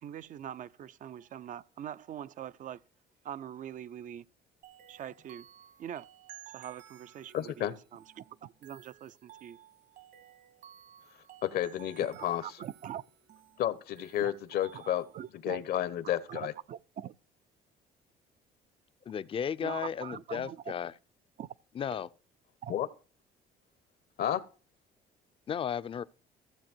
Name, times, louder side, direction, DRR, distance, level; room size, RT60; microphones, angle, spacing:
voice 1, 0.0-2.8 3.2-4.2 4.9-5.5 5.8-6.1 6.5-9.6 12.1-13.0 14.2-14.3 14.7-15.6 16.3-17.1 19.6-20.7 21.4-21.5 22.6-22.7, right 10 dB, 50° right, 0.5 m, -43 dB
sound 1, 4.6-15.3, right 11 dB, 70° right, 1.8 m, -55 dB
voice 2, 7.3-7.7 11.4-12.5 13.6-15.0 15.3-16.5 22.7-22.9 24.2-24.4, left 11 dB, 65° left, 1.0 m, -31 dB
voice 3, 19.1-20.9 21.8-22.1 25.5-26.0, left 8 dB, 35° left, 0.5 m, -34 dB
14.5 x 7.2 x 4.5 m
cardioid pair, 110°, 17 cm